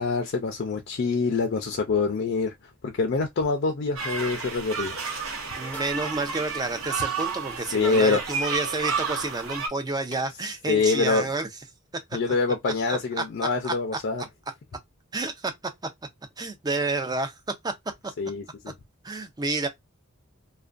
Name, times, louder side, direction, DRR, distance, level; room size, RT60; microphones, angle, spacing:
voice 1, 0.0-2.5 2.8-5.0 7.7-8.2 10.7-11.3 12.1-14.2 18.2-18.7, left 4 dB, 50° left, 0.4 m, -25 dB
sound 1, 4.0-9.7, right 5 dB, 80° right, 0.9 m, -31 dB
voice 2, 5.6-11.5 12.9-13.0 13.6-13.7 15.1-15.5 16.4-17.3 17.6-17.7 19.0-19.7, right 3 dB, 20° right, 0.4 m, -29 dB
sound 2, 5.7-6.0 7.2-7.4 7.9-8.1 9.3-9.4 10.1-11.0, left 1 dB, 5° left, 0.8 m, -47 dB
2.4 x 2.2 x 2.4 m
head